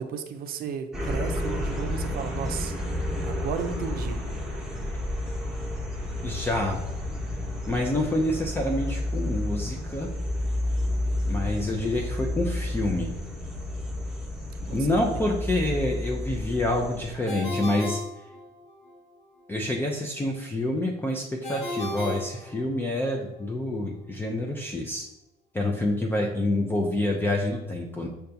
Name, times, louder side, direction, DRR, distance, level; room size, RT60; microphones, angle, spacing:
voice 1, 0.0-2.7 3.2-4.2 14.7-15.1, right 6 dB, 60° right, 8 dB, 0.5 m, -34 dB
sound 1, 0.9-17.1, left 1 dB, 5° right, 0.9 m, -31 dB
voice 2, 6.2-6.8 7.7-10.1 11.3-13.1 14.6-18.0 19.5-25.1 25.5-28.1, left 1 dB, 10° left, -1 dB, 0.4 m, -27 dB
Ringtone, 17.3-18.9 21.4-23.1, left 1 dB, 45° left, 0.9 m, -35 dB
5.4 x 2.3 x 2.6 m, 0.97 s
cardioid pair, 110°, 17 cm